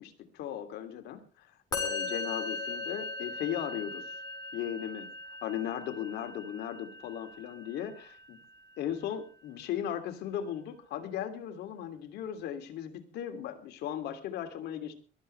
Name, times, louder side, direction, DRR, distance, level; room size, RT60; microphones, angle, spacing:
voice 1, 0.0-4.1 4.5-8.4 8.8-14.9, left 10 dB, 80° left, 7 dB, 2.9 m, -37 dB
Musical instrument, 1.7-9.0, left 3 dB, 20° left, 5.4 m, -39 dB
22.5 x 14.0 x 3.4 m, 0.37 s
cardioid pair, 110°, 17 cm